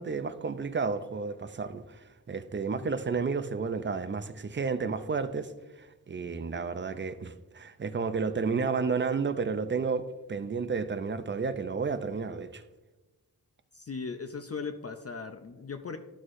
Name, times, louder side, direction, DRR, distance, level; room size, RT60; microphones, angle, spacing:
voice 1, 0.0-2.0 2.3-5.5 6.1-10.0 10.3-12.6, right 5 dB, 30° right, 0.4 m, -31 dB
voice 2, 13.7-16.0, left 5 dB, 40° left, 0.5 m, -38 dB
11.0 x 6.3 x 2.5 m
wide cardioid pair, 85°, 37 cm